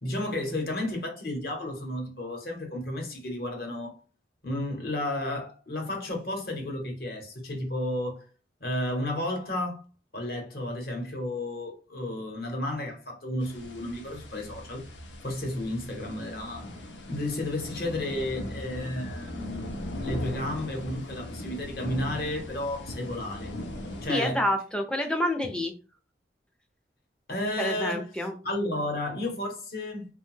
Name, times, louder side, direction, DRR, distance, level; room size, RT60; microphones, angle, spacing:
voice 1, 0.0-4.0 4.4-8.2 8.6-9.8 10.1-14.8 15.2-16.7 17.1-19.7 20.0-23.5 24.0-24.4 27.3-28.1 28.4-30.1, left 1 dB, 55° left, 0.9 m, -32 dB
sound 1, 13.4-24.1, left 1 dB, 90° left, 0.5 m, -39 dB
voice 2, 24.1-25.7 27.6-28.3, left 1 dB, 5° left, 0.4 m, -28 dB
2.5 x 2.2 x 3.1 m
head